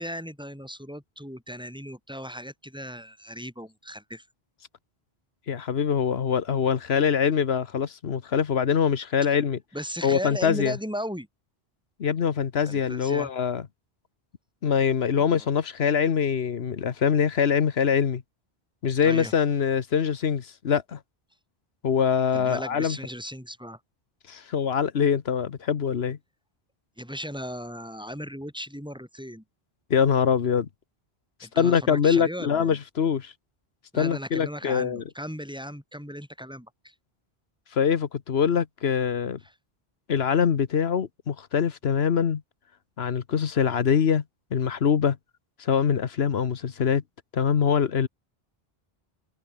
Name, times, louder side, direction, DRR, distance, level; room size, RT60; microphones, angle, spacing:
voice 1, 0.0-4.2 9.7-11.3 12.7-13.3 15.2-15.5 19.0-19.3 22.3-23.8 27.0-29.4 31.4-32.8 33.9-36.9 39.4-39.5, equal, 5° right, 7.5 m, -37 dB
voice 2, 5.5-9.6 10.0-10.8 12.0-13.6 14.6-18.2 18.8-21.0 21.8-23.0 24.3-26.2 29.9-30.7 31.6-33.3 33.9-35.0 37.7-39.4 40.1-42.4 43.0-44.2 44.5-45.2 45.6-47.0 47.3-48.1, left 7 dB, 85° left, 1.3 m, -24 dB
omnidirectional pair, 1.0 m